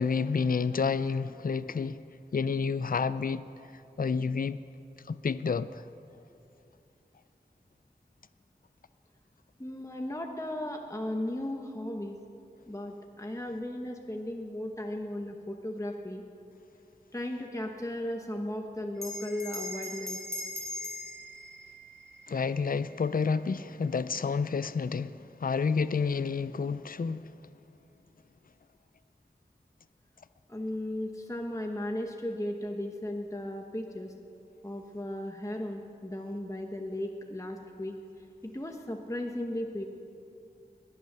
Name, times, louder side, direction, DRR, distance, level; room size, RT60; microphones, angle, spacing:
voice 1, 0.0-2.0 2.3-3.5 4.0-4.6 5.1-5.8 22.3-27.3, left 5 dB, 55° left, 0.4 m, -29 dB
voice 2, 9.6-12.2 12.7-16.2 17.1-20.2 30.5-34.1 34.6-38.0 38.4-39.8, left 1 dB, 20° left, 1.1 m, -36 dB
Bell, 19.0-23.8, left 1 dB, 15° right, 2.7 m, -41 dB
21.0 x 8.6 x 6.7 m
wide cardioid pair, 45°, 18 cm